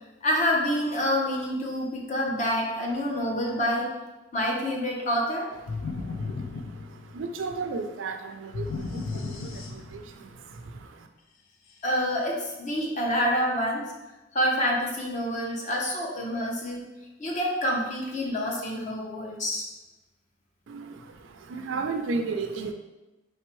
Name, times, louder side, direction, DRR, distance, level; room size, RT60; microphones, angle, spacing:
voice 1, 0.2-3.9 4.3-5.5 11.8-13.9 14.3-16.8 17.2-19.7, equal, 35° left, -1 dB, 0.7 m, -27 dB
sound 1, 5.7-7.4 8.5-10.2, left 4 dB, 85° left, 0.5 m, -34 dB
voice 2, 5.7-11.1 20.7-22.7, right 4 dB, 70° right, 6 dB, 0.4 m, -35 dB
4.4 x 3.3 x 3.1 m, 1.0 s
head